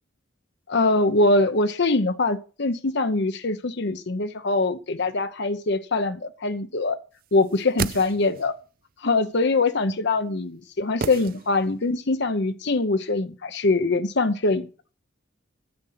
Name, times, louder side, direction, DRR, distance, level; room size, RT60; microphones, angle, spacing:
voice 1, 0.7-7.0 7.3-8.5 9.0-14.7, left 2 dB, 60° left, 0.9 m, -23 dB
sound 1, 7.4-8.6 11.0-11.9 12.2-12.3, right 6 dB, 50° right, 0.5 m, -33 dB
9.7 x 7.9 x 5.8 m
head